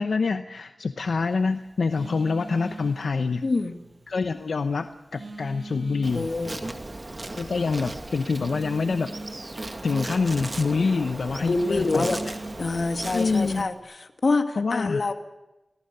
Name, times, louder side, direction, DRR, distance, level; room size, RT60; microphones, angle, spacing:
voice 1, 0.0-3.4 4.1-6.3 6.6-6.7 7.4-9.1 9.8-12.4 13.1-13.7 14.6-15.1, left 4 dB, 90° left, 8 dB, 0.9 m, -26 dB
Telephone, 1.0-13.8, right 2 dB, 65° right, 7.0 m, -44 dB
voice 2, 3.4-3.7 6.1-6.8 10.8-11.0 11.4-12.2 12.6-15.1, left 3 dB, 65° left, 6 dB, 2.1 m, -26 dB
Insect, 6.0-13.6, right 2 dB, 40° right, 2.1 m, -36 dB
25.5 x 18.0 x 6.8 m, 1.0 s
wide cardioid pair, 65°, 0 cm